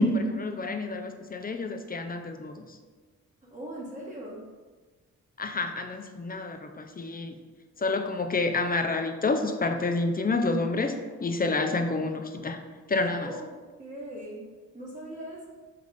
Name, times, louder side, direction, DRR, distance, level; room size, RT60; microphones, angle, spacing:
voice 1, 0.0-2.8 5.4-7.4 7.8-12.6 12.9-13.3, left 3 dB, 25° left, 5 dB, 0.5 m, -28 dB
voice 2, 3.5-4.4 11.7-12.0 13.2-13.4 13.8-14.5 14.7-15.5, right 1 dB, 20° right, -6 dB, 1.2 m, -39 dB
3.8 x 3.5 x 3.3 m, 1.4 s
supercardioid pair, 45°, 35 cm